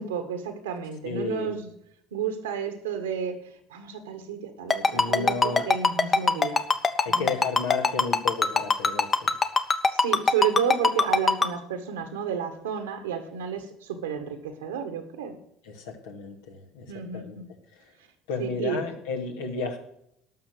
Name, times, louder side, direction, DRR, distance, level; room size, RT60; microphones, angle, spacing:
voice 1, 0.0-1.7 2.1-6.6 7.1-7.3 9.9-15.4 16.9-17.4 18.4-18.9, right 7 dB, 80° right, 8 dB, 1.7 m, -31 dB
voice 2, 1.0-1.5 4.9-5.7 7.0-9.3 15.6-17.4 18.3-19.8, left 4 dB, 75° left, 2 dB, 2.3 m, -32 dB
Ringtone, 4.7-11.5, left 4 dB, 30° left, 1.2 m, -20 dB
12.5 x 6.4 x 7.9 m, 0.74 s
hypercardioid pair, 65°, 0 cm